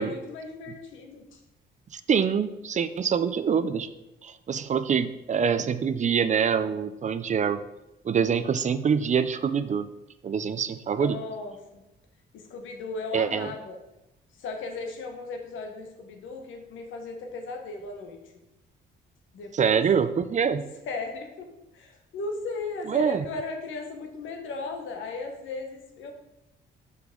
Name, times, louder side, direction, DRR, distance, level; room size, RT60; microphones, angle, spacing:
voice 1, 0.0-1.4 10.9-11.8 12.3-13.8 14.4-18.2 19.3-19.7 20.9-21.5 21.7-26.1, left 3 dB, 80° left, 4 dB, 1.2 m, -36 dB
voice 2, 1.9-3.9 4.2-7.6 8.0-9.9 10.2-11.2 13.1-13.5 19.5-20.6 22.9-23.2, right 7 dB, 40° right, 12 dB, 0.4 m, -25 dB
5.9 x 5.9 x 3.7 m, 0.93 s
cardioid pair, 90°, 20 cm